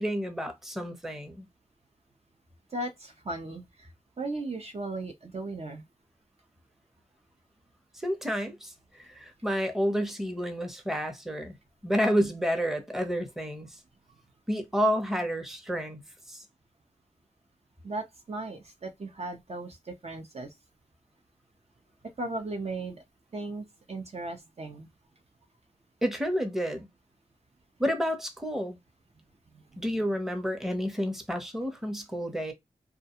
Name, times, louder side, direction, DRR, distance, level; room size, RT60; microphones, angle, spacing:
voice 1, 0.0-1.5 7.9-11.6 11.8-13.7 14.5-16.0 16.3-16.4 26.0-26.9 27.8-28.8 29.8-32.5, equal, 5° right, 0.7 m, -30 dB
voice 2, 2.7-3.9 4.2-5.8 17.8-20.5 22.2-23.0 23.3-24.9 29.5-30.0, right 2 dB, 45° right, 0.6 m, -37 dB
2.4 x 2.2 x 2.8 m
cardioid pair, 55°, 14 cm